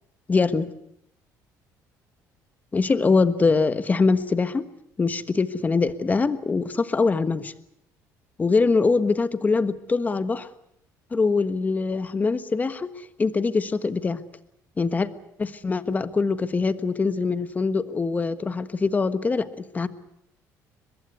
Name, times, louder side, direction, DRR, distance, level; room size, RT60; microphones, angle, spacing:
voice 1, 0.3-0.7 2.7-4.6 5.0-7.5 8.4-10.5 11.1-12.9 13.2-14.2 14.8-15.1 15.4-19.5 19.7-19.9, left 4 dB, 25° left, 12 dB, 1.4 m, -23 dB
23.5 x 21.0 x 8.2 m, 0.77 s
cardioid pair, 115°, 7 cm